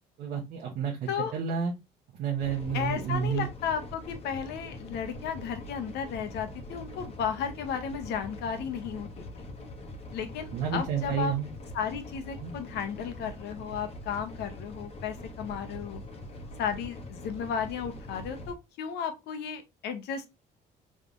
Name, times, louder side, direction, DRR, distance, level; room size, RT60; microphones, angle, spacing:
voice 1, 0.2-1.7 2.2-3.5 10.5-11.5 12.4-12.5, right 7 dB, 70° right, 0.9 m, -30 dB
sound 1, 2.4-18.5, left 1 dB, 40° left, 1.0 m, -43 dB
voice 2, 2.7-9.5 10.1-11.3 11.7-16.0 16.6-20.3, left 7 dB, 80° left, 0.8 m, -34 dB
3.6 x 3.2 x 2.5 m
cardioid pair, 110°, 17 cm